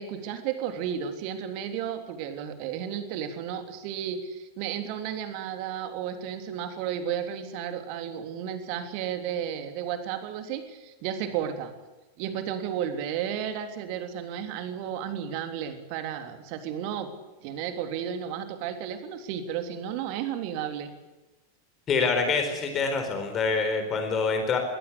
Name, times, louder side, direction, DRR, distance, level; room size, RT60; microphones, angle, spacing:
voice 1, 0.0-11.7 12.2-17.1 17.4-20.9, right 9 dB, 45° right, 7 dB, 3.3 m, -33 dB
voice 2, 21.9-24.6, left 4 dB, 25° left, 5 dB, 4.3 m, -26 dB
22.0 x 17.5 x 8.4 m, 1.1 s
figure-of-eight pair, 90°, 0 cm